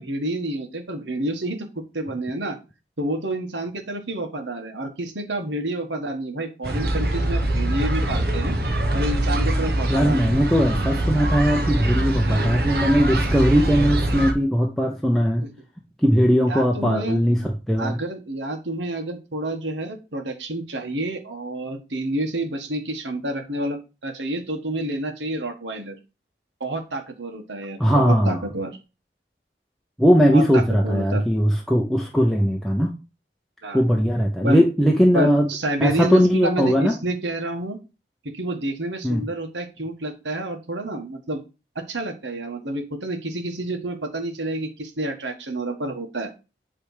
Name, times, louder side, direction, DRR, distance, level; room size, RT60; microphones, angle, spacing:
voice 1, 0.0-2.6 3.0-8.6 8.9-10.3 12.2-12.5 16.5-17.2 17.8-25.9 26.6-28.8 30.3-31.2 33.6-33.8 34.4-34.6 35.1-37.8 38.2-41.4 41.7-46.3, right 1 dB, 85° right, 5 dB, 1.5 m, -29 dB
sound 1, 6.6-14.3, right 1 dB, 55° right, 1.1 m, -23 dB
voice 2, 9.9-15.5 16.0-18.0 27.8-28.4 30.0-32.9 33.7-35.5 35.8-37.0 39.0-39.3, equal, ahead, 0 dB, 0.6 m, -19 dB
8.1 x 3.4 x 4.9 m, 0.30 s
head